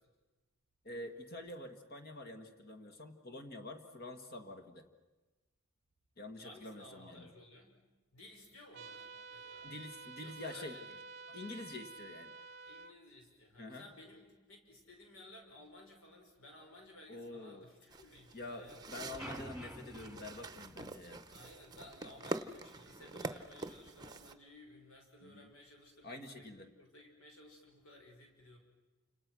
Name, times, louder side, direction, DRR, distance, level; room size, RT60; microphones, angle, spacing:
voice 1, 0.8-4.9 6.2-7.3 9.6-10.8 11.3-12.3 13.6-13.9 17.1-17.7 18.3-21.2 25.2-25.5 26.0-26.7, left 2 dB, 45° left, 7 dB, 1.8 m, -47 dB
voice 2, 6.4-7.7 8.1-9.7 10.2-10.9 12.6-18.8 21.3-28.6, left 1 dB, 70° left, 2 dB, 5.7 m, -57 dB
sound 1, 8.7-12.9, right 4 dB, 50° right, 0.7 m, -50 dB
sound 2, 17.9-24.3, right 2 dB, 20° right, 0.9 m, -45 dB
sound 3, 19.2-21.5, equal, ahead, 2.4 m, -49 dB
29.5 x 27.0 x 6.2 m, 1.2 s
head